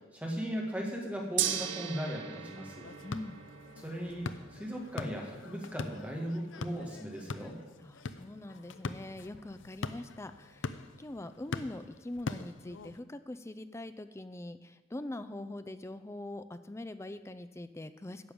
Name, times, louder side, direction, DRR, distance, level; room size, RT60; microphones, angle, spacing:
voice 1, 0.1-2.9 3.8-7.6, equal, 10° right, -1 dB, 1.8 m, -37 dB
Gong, 1.4-11.6, right 10 dB, 75° right, 0.8 m, -42 dB
sound 1, 2.8-13.0, left 4 dB, 75° left, 0.6 m, -43 dB
voice 2, 3.0-3.4 7.8-18.3, left 1 dB, 15° left, 11 dB, 0.4 m, -43 dB
10.5 x 6.3 x 8.7 m, 1.2 s
head